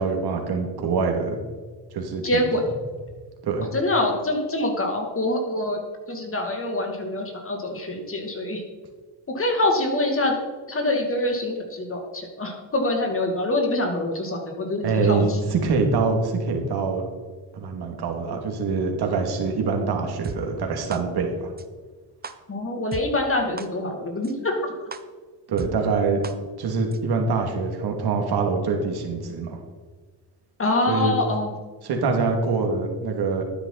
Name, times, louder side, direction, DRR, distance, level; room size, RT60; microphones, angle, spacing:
voice 1, 0.0-1.4 1.9-2.4 3.4-3.7 14.8-17.0 17.5-21.5 25.5-26.2 26.6-29.6 30.9-31.1 31.8-33.4, right 4 dB, 55° right, 3 dB, 2.6 m, -24 dB
voice 2, 2.2-2.6 3.7-5.8 6.1-8.6 9.3-10.3 10.7-15.4 22.5-24.6 30.6-31.5, left 2 dB, 30° left, 2 dB, 2.6 m, -25 dB
sound 1, 20.2-20.3 20.9-21.0 21.6-21.7 22.2-22.3 22.9-23.0 23.6-23.7 24.2-24.3 24.9-25.0 25.6-25.7 26.2-26.3 26.9-27.0, right 5 dB, 20° right, 0.8 m, -34 dB
11.5 x 9.8 x 4.1 m, 1.4 s
supercardioid pair, 90°, 45 cm